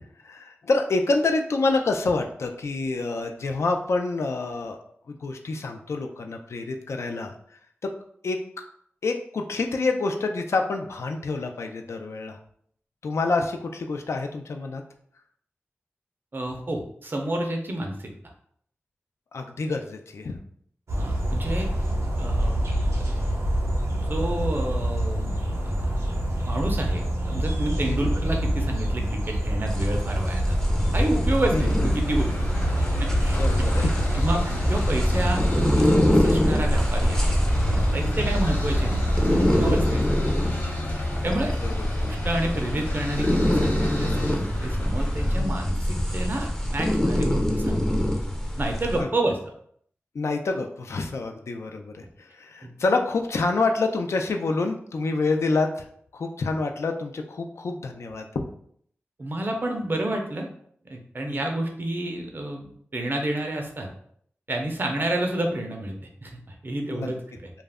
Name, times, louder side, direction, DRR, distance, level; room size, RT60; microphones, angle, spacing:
voice 1, 0.2-4.8 5.1-7.4 7.8-7.9 8.2-8.4 9.0-12.4 13.0-14.8 19.3-20.4 27.9-28.1 31.5-31.7 33.4-34.0 38.2-38.3 41.6-41.9 45.4-45.5 49.0-49.1 50.1-52.1 52.3-55.9 56.1-58.4 61.3-61.4 66.9-67.1, left 3 dB, 75° left, 4 dB, 0.3 m, -27 dB
voice 2, 16.3-18.1 21.0-21.7 22.2-22.7 23.0-23.2 24.0-25.9 26.5-30.6 30.9-32.6 33.0-37.4 37.7-39.0 39.4-40.4 41.2-41.5 42.0-47.9 48.6-49.4 52.6-52.7 59.2-60.5 60.8-63.9 64.5-67.5, right 1 dB, 45° right, 2 dB, 0.5 m, -30 dB
sound 1, 20.9-40.0, right 1 dB, 85° right, 0.6 m, -26 dB
sound 2, 29.7-49.0, left 1 dB, 10° left, 0.5 m, -26 dB
sound 3, 31.0-45.4, left 2 dB, 50° left, 1.0 m, -32 dB
2.3 x 2.0 x 3.4 m, 0.64 s
wide cardioid pair, 75°, 5 cm